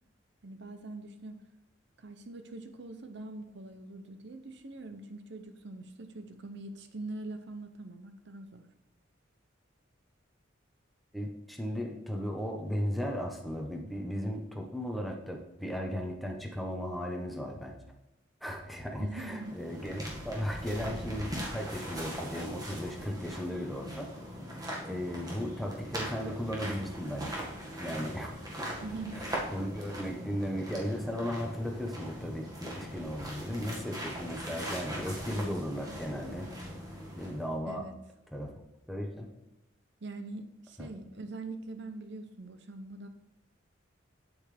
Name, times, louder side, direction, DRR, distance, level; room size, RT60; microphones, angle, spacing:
voice 1, 0.4-1.4 2.0-8.7 19.0-19.6 28.8-29.3 37.7-37.9 40.0-43.1, right 2 dB, 60° right, 8 dB, 0.7 m, -43 dB
voice 2, 11.1-17.8 18.4-24.1 24.8-27.4 27.8-28.3 28.6-28.7 29.1-36.5 37.2-37.8 38.3-38.5 38.9-39.3 40.8-40.9, equal, ahead, 1 dB, 1.1 m, -36 dB
sound 1, 19.3-37.5, equal, 20° right, 1.8 m, -40 dB
8.9 x 8.5 x 3.4 m, 0.95 s
head